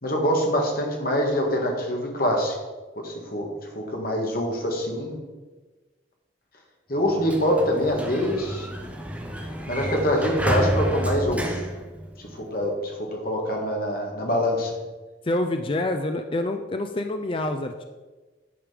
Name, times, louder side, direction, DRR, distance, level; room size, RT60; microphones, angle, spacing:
voice 1, 0.0-2.5 3.0-3.5 3.7-5.2 6.9-8.7 9.7-11.6 12.2-14.7, equal, 50° left, 1 dB, 1.8 m, -25 dB
Sliding door, 7.0-12.6, equal, 10° right, 0.9 m, -30 dB
voice 2, 15.2-17.8, left 1 dB, 30° left, 5 dB, 0.4 m, -27 dB
10.5 x 5.1 x 5.1 m, 1.2 s
head